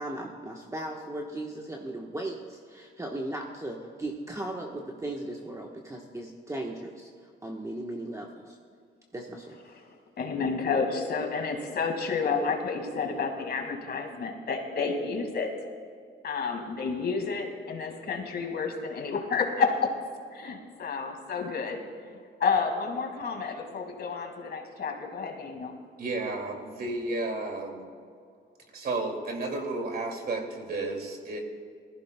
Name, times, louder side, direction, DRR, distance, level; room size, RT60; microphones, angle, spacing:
voice 1, 0.0-8.6 9.1-9.6, right 1 dB, 15° right, 0 dB, 1.2 m, -37 dB
voice 2, 10.2-15.5 16.2-19.9 20.3-22.1 22.4-25.7, left 5 dB, 55° left, 3 dB, 2.0 m, -30 dB
voice 3, 26.0-27.8 28.7-31.4, right 2 dB, 50° right, 2 dB, 2.3 m, -32 dB
19.5 x 14.5 x 2.2 m, 2.2 s
cardioid pair, 90°, 20 cm